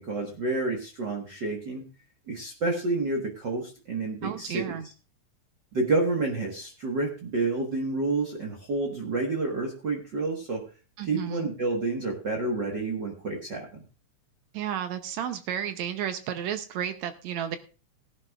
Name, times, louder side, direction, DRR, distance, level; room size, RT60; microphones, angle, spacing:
voice 1, 0.0-1.9 2.3-4.8 5.7-10.6 11.0-13.8, right 3 dB, 45° right, 0 dB, 1.6 m, -29 dB
voice 2, 4.2-4.9 11.0-11.5 14.5-17.6, right 9 dB, 75° right, 9 dB, 1.9 m, -32 dB
18.0 x 11.0 x 2.4 m, 0.35 s
omnidirectional pair, 3.6 m